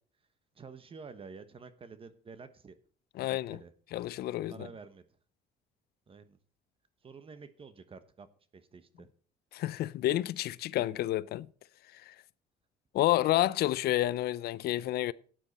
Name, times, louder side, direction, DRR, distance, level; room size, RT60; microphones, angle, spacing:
voice 1, 0.5-2.8 3.2-3.7 4.5-5.1 6.1-6.4 7.0-8.3 8.5-9.1, right 5 dB, 35° right, 1.1 m, -49 dB
voice 2, 3.2-3.6 3.9-4.5 9.5-11.5 11.9-12.1 12.9-15.1, left 14 dB, 70° left, 0.5 m, -29 dB
13.0 x 9.2 x 4.2 m
cardioid pair, 110°, 17 cm